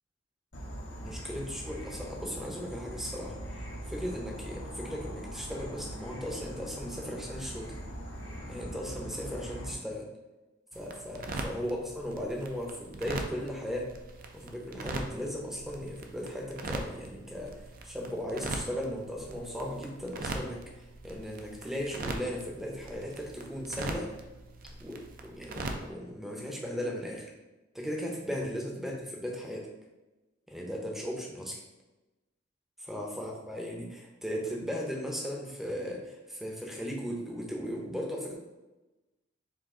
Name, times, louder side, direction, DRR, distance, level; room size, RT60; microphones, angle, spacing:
Insect / Frog, 0.5-9.7, equal, 80° left, 1.1 m, -42 dB
voice 1, 1.0-3.4 3.8-7.8 8.5-10.1 10.7-13.9 14.3-24.1 24.8-27.3 27.7-29.7 30.5-31.6 32.8-38.3, equal, ahead, -1 dB, 0.7 m, -37 dB
sound 1, 10.7-25.9, right 2 dB, 45° right, 0.5 m, -41 dB
4.8 x 2.5 x 3.7 m, 1.1 s
head